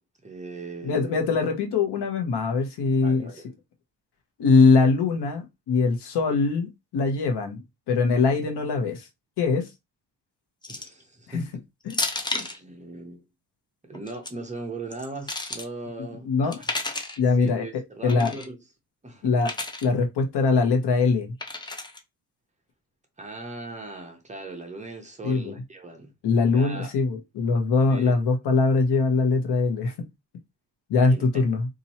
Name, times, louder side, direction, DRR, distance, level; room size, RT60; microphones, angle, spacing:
voice 1, 0.2-1.1 3.0-3.5 10.7-11.6 12.3-13.3 13.8-16.7 17.3-18.6 19.0-19.4 23.2-26.1 26.4-26.9 27.9-28.1 31.1-31.5, right 2 dB, 20° right, 0.7 m, -39 dB
voice 2, 0.8-3.3 4.4-6.7 6.9-9.0 9.4-9.6 11.3-11.4 11.9-12.0 16.2-16.6 17.2-18.3 19.2-19.5 19.8-21.3 25.2-25.6 26.2-30.1 30.9-31.7, left 4 dB, 75° left, 1.1 m, -22 dB
sound 1, 10.6-11.0 11.9-12.6 13.9-14.3 14.9-15.7 16.5-17.2 18.1-18.5 19.4-19.9 21.4-22.0, left 2 dB, 10° left, 0.4 m, -31 dB
2.9 x 2.6 x 4.2 m
cardioid pair, 155°, 40 cm